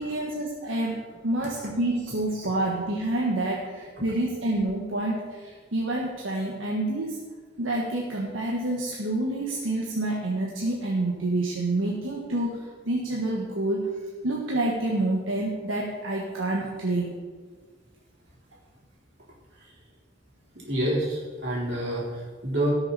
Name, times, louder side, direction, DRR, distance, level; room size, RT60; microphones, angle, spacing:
voice 1, 0.0-7.2 7.6-13.9 14.2-17.1, right 2 dB, 80° right, -3 dB, 1.5 m, -28 dB
voice 2, 20.5-22.7, right 1 dB, 60° right, -5 dB, 3.9 m, -28 dB
18.0 x 6.8 x 4.2 m, 1.5 s
head